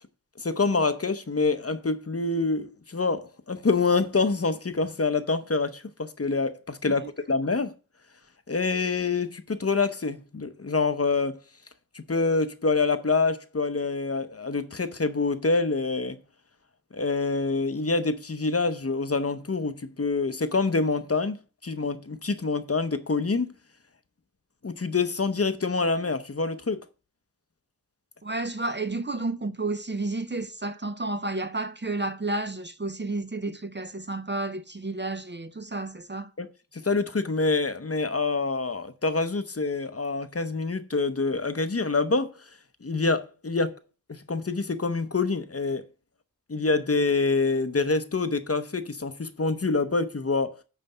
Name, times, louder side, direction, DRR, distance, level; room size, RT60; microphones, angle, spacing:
voice 1, 0.4-7.7 8.5-11.4 11.9-16.2 16.9-21.4 21.6-23.5 24.6-26.8 36.4-36.5 36.8-42.3 42.8-43.8 44.1-45.8 46.5-50.6, left 3 dB, 40° left, 0.7 m, -26 dB
voice 2, 28.2-36.3, right 2 dB, 30° right, 0.5 m, -31 dB
9.2 x 3.4 x 6.6 m
wide cardioid pair, 65°, 37 cm